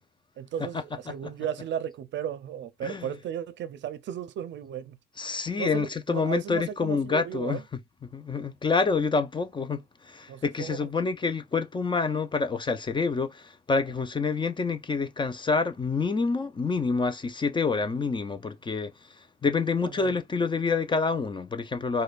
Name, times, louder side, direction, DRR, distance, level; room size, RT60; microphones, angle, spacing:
voice 1, 0.4-5.0 5.6-7.6 10.3-10.9 20.0-20.1, right 9 dB, 65° right, 0.5 m, -35 dB
voice 2, 5.2-7.6 8.1-18.9 19.4-22.0, left 4 dB, 25° left, 0.5 m, -27 dB
4.9 x 2.2 x 2.4 m
cardioid pair, 90°, 20 cm